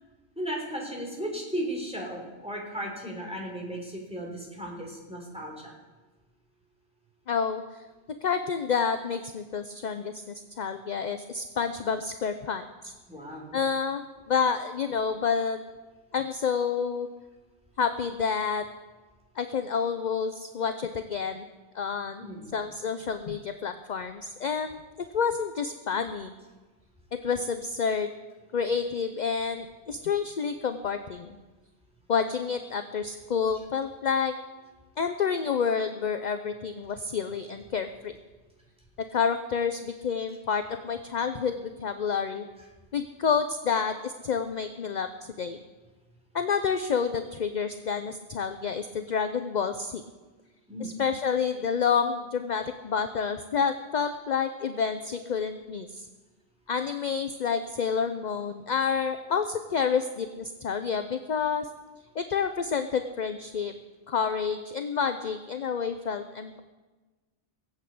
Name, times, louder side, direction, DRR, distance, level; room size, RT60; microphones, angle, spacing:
voice 1, 0.4-5.7 13.1-13.6 22.2-22.6 50.7-50.9, equal, 5° right, -2 dB, 3.8 m, -35 dB
voice 2, 7.3-7.6 8.2-10.1 10.6-12.9 13.5-15.6 16.1-17.1 17.8-18.7 19.4-21.4 21.7-22.3 22.5-24.8 25.1-26.3 27.2-28.1 28.5-31.4 32.1-34.4 35.0-38.1 39.1-42.4 42.9-45.1 45.4-45.6 46.3-50.0 50.8-56.1 56.7-61.7 62.2-63.7 64.1-66.6, left 6 dB, 45° left, 9 dB, 0.7 m, -29 dB
18.5 x 8.2 x 8.4 m, 1.3 s
omnidirectional pair, 1.2 m